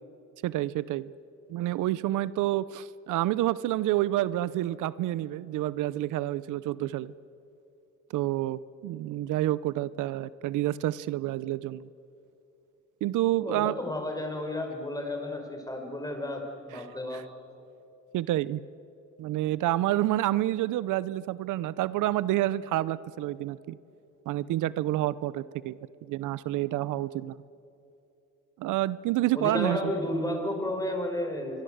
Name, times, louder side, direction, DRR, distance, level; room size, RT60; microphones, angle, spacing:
voice 1, 0.4-1.1 1.5-7.1 8.1-11.9 13.0-13.8 17.1-17.2 18.1-18.6 19.2-23.8 24.3-25.8 26.1-27.4 28.6-29.9, right 15 dB, 85° right, 18 dB, 0.7 m, -28 dB
voice 2, 13.3-17.3 29.3-31.6, left 1 dB, 10° left, 3 dB, 5.6 m, -32 dB
25.5 x 23.0 x 7.9 m, 2.8 s
cardioid pair, 90°, 30 cm